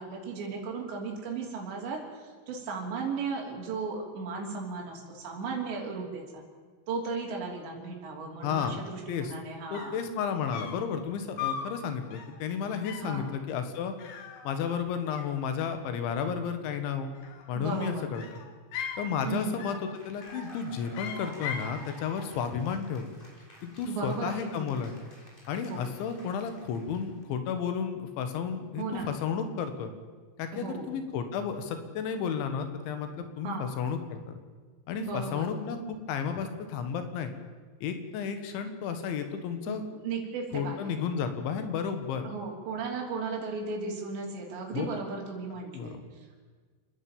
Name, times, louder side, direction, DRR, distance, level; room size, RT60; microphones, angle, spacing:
voice 1, 0.0-6.4 6.9-9.9 13.0-13.4 17.6-18.1 19.2-19.6 23.9-24.7 25.7-25.9 28.8-29.1 30.5-30.9 33.4-33.7 35.0-35.5 39.7-40.9 42.2-46.4, right 4 dB, 75° right, -1 dB, 5.4 m, -36 dB
voice 2, 8.4-8.8 9.1-9.3 9.7-13.9 14.4-17.1 17.5-18.2 19.0-19.8 20.0-23.1 23.6-24.9 25.5-29.9 30.4-34.4 34.9-37.3 37.8-39.8 40.5-42.3 44.7-44.9 45.7-46.0, left 7 dB, 85° left, 8 dB, 4.0 m, -32 dB
sound 1, 9.5-9.6 9.7-10.1 10.5-10.9 11.4-11.7 12.1-12.4 12.8-13.2 14.0-14.9 15.1-15.8 17.0-17.7 18.1-19.1 19.6-19.9 20.2-20.6 20.9-21.8, left 7 dB, 60° left, 2.7 m, -39 dB
Cheering / Applause, 19.7-27.2, left 1 dB, 10° left, 3.7 m, -51 dB
28.5 x 10.5 x 8.8 m, 1.5 s
omnidirectional pair, 5.2 m